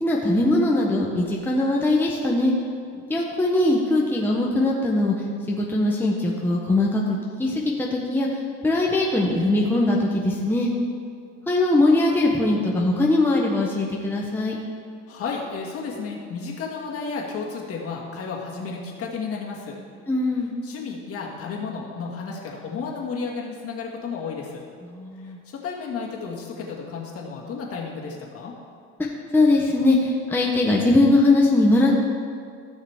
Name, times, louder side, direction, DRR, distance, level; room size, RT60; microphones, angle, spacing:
voice 1, 0.0-2.5 2.9-5.1 5.5-10.7 11.5-14.6 20.1-20.5 24.9-25.4 29.3-32.0, left 2 dB, 5° left, -2 dB, 0.9 m, -21 dB
voice 2, 15.1-19.8 20.6-24.6 25.2-28.5, left 5 dB, 50° left, -2 dB, 2.0 m, -32 dB
16.0 x 6.4 x 3.6 m, 2.2 s
cardioid pair, 130°, 31 cm